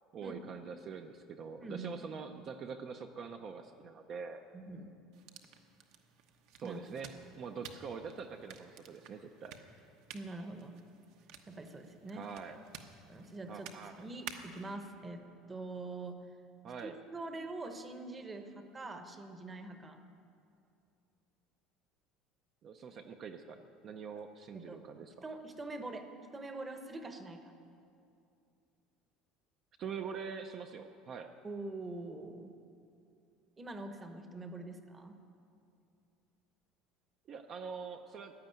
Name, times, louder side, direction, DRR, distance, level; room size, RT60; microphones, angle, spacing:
voice 1, 0.1-4.4 6.6-9.6 12.1-12.6 13.5-14.1 16.6-17.0 22.6-25.3 29.8-31.3 37.3-38.3, right 6 dB, 30° right, 6 dB, 0.6 m, -44 dB
voice 2, 1.6-1.9 4.5-4.9 6.6-6.8 10.1-10.7 11.5-12.3 13.1-16.2 16.8-20.0 24.5-24.8 25.2-26.1 26.3-27.5 31.4-32.5 33.6-35.1, right 2 dB, 15° right, 7 dB, 0.9 m, -44 dB
sound 1, 5.1-14.7, right 7 dB, 55° right, 1.1 m, -53 dB
15.5 x 10.5 x 9.1 m, 2.6 s
cardioid pair, 180°, 0 cm